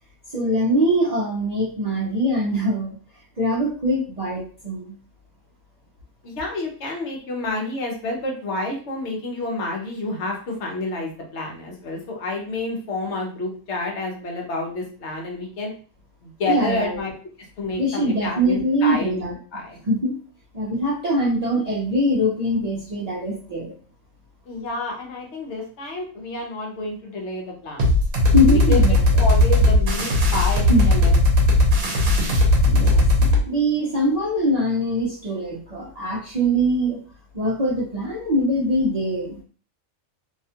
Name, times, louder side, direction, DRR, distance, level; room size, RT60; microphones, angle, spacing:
voice 1, 0.3-3.0 3.4-4.9 16.4-17.0 17.8-19.3 19.9-20.2 20.5-23.7 28.3-29.0 30.7-30.9 32.6-37.0 37.3-39.4, equal, 40° right, -6 dB, 0.6 m, -22 dB
voice 2, 6.2-15.7 16.2-17.1 17.6-19.8 24.5-27.9 28.7-31.2, left 2 dB, 65° left, 0 dB, 1.0 m, -29 dB
sound 1, 27.8-33.4, left 1 dB, 60° right, 1.0 m, -17 dB
2.7 x 2.3 x 2.7 m, 0.41 s
omnidirectional pair, 1.3 m